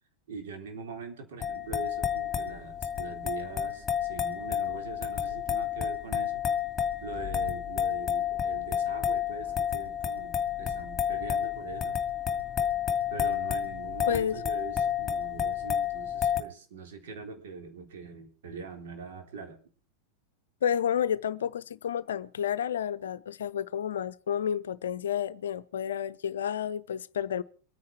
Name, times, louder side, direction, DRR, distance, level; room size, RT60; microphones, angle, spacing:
voice 1, 0.3-6.4 7.0-12.0 13.1-19.6, right 5 dB, 55° right, 3.7 m, -43 dB
sound 1, 1.4-16.4, left 9 dB, 20° left, 2.2 m, -30 dB
voice 2, 14.1-14.4 20.6-27.4, left 9 dB, 65° left, 0.6 m, -30 dB
24.0 x 9.5 x 4.7 m
figure-of-eight pair, 90°, 0 cm